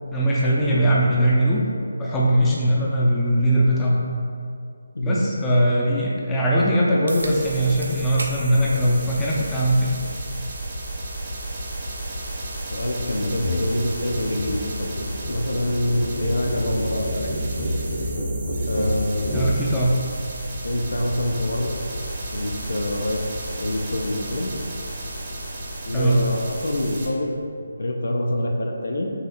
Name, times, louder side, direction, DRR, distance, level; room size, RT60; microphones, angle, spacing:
voice 1, 0.1-1.6 2.0-4.0 5.0-9.9 19.3-19.9 25.9-26.2, right 1 dB, 10° left, -6 dB, 0.5 m, -20 dB
sound 1, 7.1-7.4 7.8-8.4 8.8-8.9 10.0-10.1 15.0-15.1, right 2 dB, 70° right, 0.4 m, -34 dB
sound 2, 7.2-27.1, right 1 dB, 45° right, 0.9 m, -33 dB
voice 2, 12.7-15.0 15.3-17.3 18.7-19.4 20.6-21.8 22.3-23.2 23.6-24.5 25.8-27.3 27.5-29.1, left 1 dB, 65° left, 1 dB, 0.5 m, -25 dB
sound 3, 13.4-13.6 13.9-19.5, equal, 30° left, 0.9 m, -28 dB
5.6 x 2.8 x 2.4 m, 2.3 s
figure-of-eight pair, 155°, 0 cm